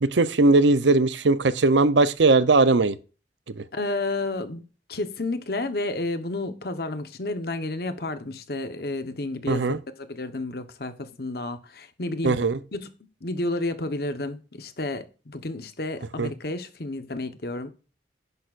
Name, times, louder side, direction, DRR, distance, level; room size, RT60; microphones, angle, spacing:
voice 1, 0.0-3.0 3.6-3.7 9.5-9.8 12.2-12.6 16.2-16.3, right 3 dB, 85° right, 0.7 m, -19 dB
voice 2, 3.7-4.6 4.9-9.7 10.0-12.4 12.7-12.9 13.2-17.7, left 2 dB, 60° left, 1.1 m, -31 dB
11.0 x 10.5 x 2.6 m
head